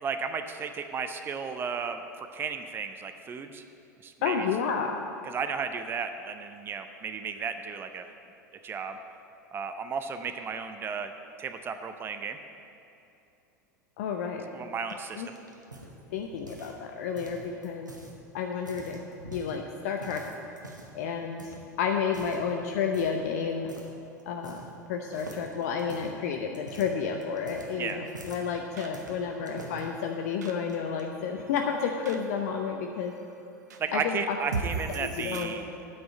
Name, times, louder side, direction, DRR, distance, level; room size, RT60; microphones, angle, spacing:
voice 1, 0.0-3.6 4.0-4.5 5.3-8.1 8.6-9.0 9.5-11.1 11.4-12.4 14.5-15.4 27.8-28.0 33.8-35.7, right 6 dB, 25° right, 8 dB, 0.6 m, -34 dB
voice 2, 4.2-5.0 14.0-14.4 14.9-15.3 16.1-17.9 18.3-19.0 19.3-20.2 20.9-23.7 24.3-24.6 24.9-33.1 33.9-34.4 35.0-35.5, left 6 dB, 55° left, 3 dB, 0.7 m, -31 dB
sound 1, 14.9-16.8 17.1-18.1 18.5-19.6 20.0-21.0 21.4-21.6 22.1-22.5 22.9-23.2 23.7-23.9 24.2-24.8 25.1-28.5 28.9-29.8 30.5-31.0, right 2 dB, 85° right, 1.1 m, -46 dB
sound 2, 23.2-35.4, right 5 dB, 65° right, 0.8 m, -43 dB
8.7 x 6.3 x 8.2 m, 2.7 s
figure-of-eight pair, 85°, 10 cm